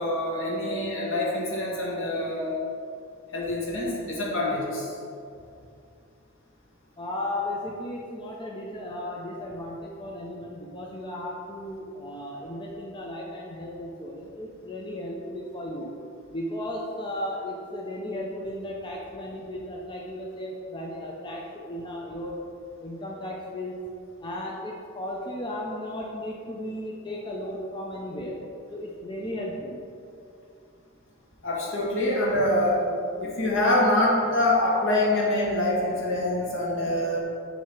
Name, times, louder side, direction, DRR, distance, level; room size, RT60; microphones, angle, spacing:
voice 1, 0.0-2.6 3.3-4.9 31.4-32.8 33.2-37.2, left 1 dB, 65° left, -4 dB, 1.2 m, -25 dB
voice 2, 7.0-15.9 16.3-22.4 22.8-23.7 24.2-28.4 28.7-29.8, left 1 dB, 20° left, -2 dB, 0.5 m, -35 dB
7.4 x 2.8 x 5.8 m, 2.5 s
head